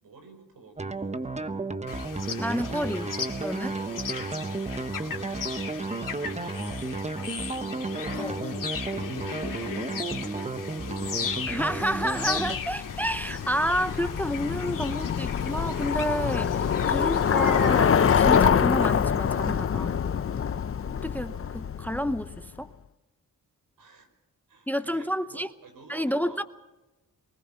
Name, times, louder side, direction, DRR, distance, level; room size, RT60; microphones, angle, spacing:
voice 1, 0.0-1.7 3.8-5.6 6.1-7.5 8.8-11.1 23.8-24.1 24.5-26.4, right 4 dB, 85° right, 4.9 m, -51 dB
sound 1, 0.8-12.6, right 3 dB, 20° right, 1.1 m, -33 dB
sound 2, 1.9-18.5, left 6 dB, 70° left, 2.5 m, -37 dB
voice 2, 2.4-3.1 3.4-3.8 8.2-8.4 11.5-20.0 20.9-22.7 24.7-25.5 25.9-26.4, equal, 5° left, 0.7 m, -30 dB
Bicycle, 11.5-22.4, left 7 dB, 40° left, 0.6 m, -25 dB
24.5 x 19.5 x 5.6 m
wide cardioid pair, 125°, 34 cm